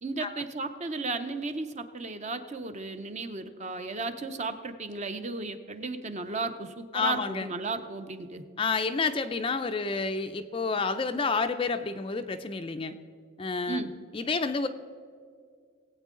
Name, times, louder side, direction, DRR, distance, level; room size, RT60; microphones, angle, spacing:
voice 1, 0.0-8.4 13.7-13.9, right 3 dB, 30° right, 9 dB, 0.6 m, -34 dB
voice 2, 6.9-7.5 8.6-12.9 13.4-13.8 14.1-14.7, left 4 dB, 25° left, 9 dB, 0.4 m, -29 dB
20.0 x 8.2 x 3.7 m, 2.1 s
head